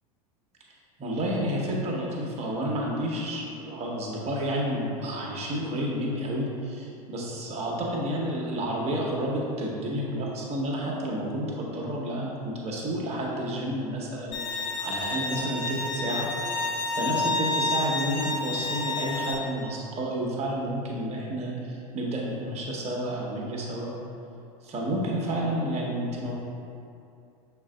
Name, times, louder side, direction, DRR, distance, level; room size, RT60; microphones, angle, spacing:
voice 1, 1.0-16.3 16.9-23.9 24.6-26.3, right 1 dB, 35° right, -3 dB, 1.1 m, -30 dB
Bowed string instrument, 14.3-19.3, left 2 dB, 45° left, 1.2 m, -29 dB
6.4 x 3.6 x 2.3 m, 2.5 s
figure-of-eight pair, 80°, 19 cm